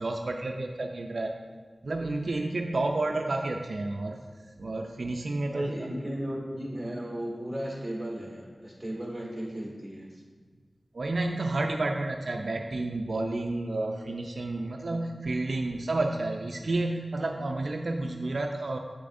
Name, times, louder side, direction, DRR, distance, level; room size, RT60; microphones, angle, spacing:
voice 1, 0.0-1.4 1.8-4.2 4.6-5.9 10.9-18.8, right 2 dB, 70° right, 3 dB, 0.4 m, -30 dB
voice 2, 5.5-10.2, equal, 15° right, -3 dB, 1.8 m, -36 dB
7.2 x 6.8 x 2.6 m, 1.5 s
wide cardioid pair, 85°, 0 cm